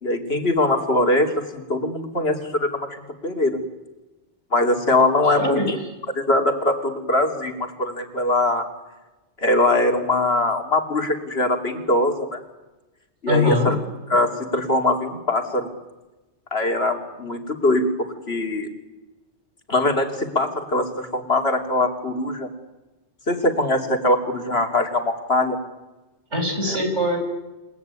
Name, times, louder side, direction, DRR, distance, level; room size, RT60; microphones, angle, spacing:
voice 1, 0.0-2.9 3.2-3.6 4.5-5.7 6.1-8.6 9.4-12.4 13.2-13.8 14.1-15.7 16.5-17.9 18.3-18.7 19.7-22.5 23.3-25.6 26.7-26.8, left 2 dB, 60° left, 5 dB, 3.1 m, -22 dB
voice 2, 5.2-5.7 13.3-13.7 26.3-27.2, left 1 dB, 85° right, 3 dB, 6.2 m, -22 dB
28.5 x 17.5 x 9.6 m, 1.1 s
omnidirectional pair, 1.2 m